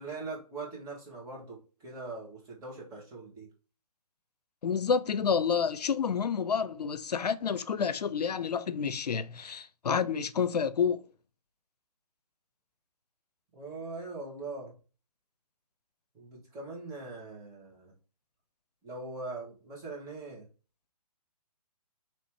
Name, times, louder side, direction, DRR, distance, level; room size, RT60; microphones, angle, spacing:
voice 1, 0.0-3.5 13.5-14.7 16.1-17.9 18.8-20.5, right 3 dB, 15° right, 1.4 m, -41 dB
voice 2, 4.6-11.0, left 6 dB, 85° left, 0.5 m, -29 dB
3.1 x 2.9 x 4.5 m
hypercardioid pair, 145°, 20 cm